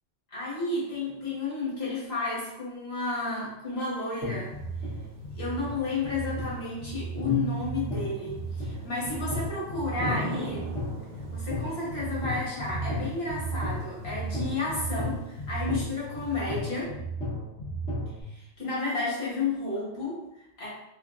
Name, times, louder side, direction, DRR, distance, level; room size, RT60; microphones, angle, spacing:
voice 1, 0.3-4.5 4.8-4.9 5.3-10.7 11.3-17.0 18.2-20.7, left 3 dB, 65° left, -6 dB, 1.4 m, -32 dB
Thunder / Rain, 4.1-16.8, right 2 dB, 55° right, 0.5 m, -44 dB
sound 1, 4.2-18.2, right 1 dB, 85° left, 1.4 m, -34 dB
3.3 x 2.6 x 2.4 m, 0.83 s
omnidirectional pair, 1.1 m